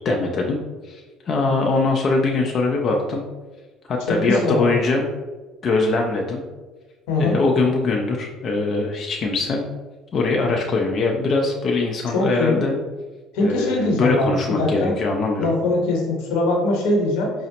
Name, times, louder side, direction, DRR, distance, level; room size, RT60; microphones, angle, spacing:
voice 1, 0.0-3.2 3.9-5.1 5.6-6.4 7.2-9.6 10.1-12.8 13.4-15.5, left 3 dB, 45° left, 0 dB, 0.4 m, -22 dB
voice 2, 4.1-4.8 7.1-7.4 12.1-12.6 13.3-14.9 15.4-17.3, left 2 dB, 85° left, -1 dB, 0.9 m, -21 dB
5.0 x 2.0 x 2.8 m, 1.3 s
cardioid pair, 100°, 0 cm